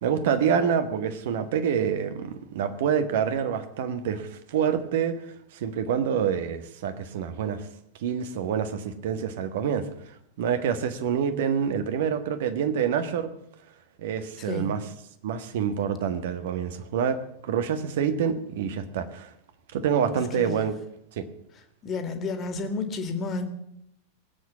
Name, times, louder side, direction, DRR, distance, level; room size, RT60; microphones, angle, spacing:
voice 1, 0.0-7.7 8.0-9.9 10.4-13.3 14.0-14.8 15.2-19.3 19.7-20.7 21.2-21.3, right 7 dB, 55° right, 10 dB, 1.5 m, -27 dB
voice 2, 14.4-14.7 20.4-20.6 21.8-23.4, left 3 dB, 30° left, 7 dB, 2.3 m, -31 dB
19.5 x 8.3 x 7.4 m, 0.77 s
figure-of-eight pair, 90°, 0 cm